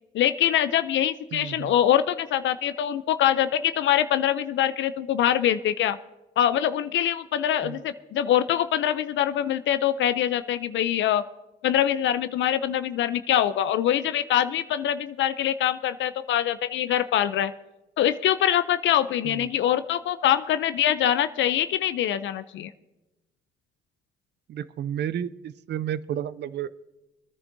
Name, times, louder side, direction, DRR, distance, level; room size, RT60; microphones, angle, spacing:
voice 1, 0.1-6.0 6.4-11.2 11.6-17.5 18.0-22.7, left 11 dB, 70° left, 12 dB, 0.5 m, -24 dB
voice 2, 1.3-1.7 7.6-7.8 19.2-19.5 24.5-26.8, right 10 dB, 60° right, 16 dB, 0.5 m, -32 dB
22.0 x 10.5 x 2.7 m, 1.0 s
cardioid pair, 90°, 20 cm